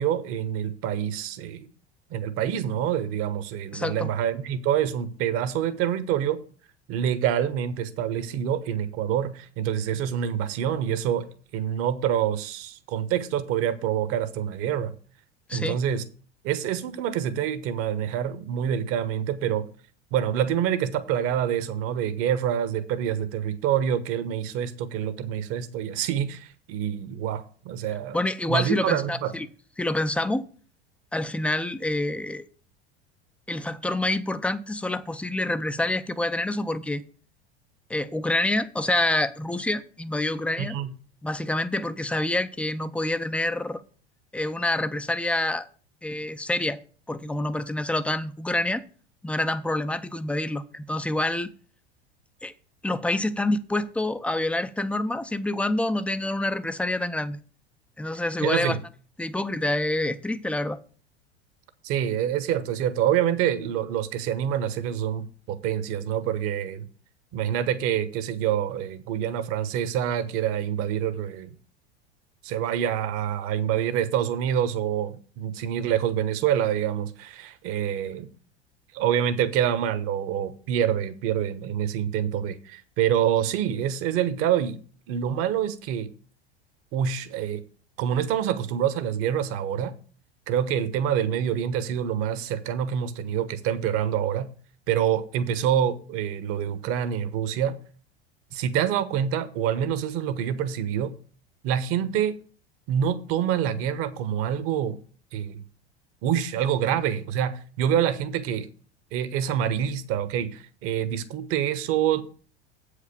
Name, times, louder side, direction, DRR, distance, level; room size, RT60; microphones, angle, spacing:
voice 1, 0.0-1.7 2.1-6.4 6.9-11.3 11.5-14.9 15.5-16.0 16.4-19.6 20.1-28.2 28.5-29.3 40.6-40.9 58.4-58.8 61.8-66.9 67.3-71.5 72.4-78.3 78.9-84.8 85.1-86.1 86.9-87.6 88.0-89.9 90.5-94.5 94.9-97.8 98.5-101.1 101.6-102.3 102.9-105.0 105.3-105.6 106.2-108.7 109.1-112.2, right 9 dB, 45° right, 1.1 m, -26 dB
voice 2, 3.7-4.1 15.5-15.8 28.1-29.5 29.8-30.5 31.1-32.4 33.5-37.0 37.9-40.8 41.2-43.8 44.3-45.7 46.0-46.8 47.1-48.8 49.2-51.5 52.4-52.5 52.8-57.4 58.0-58.8 59.2-60.8, left 1 dB, 5° left, 0.5 m, -27 dB
8.2 x 5.0 x 6.9 m
figure-of-eight pair, 80°, 32 cm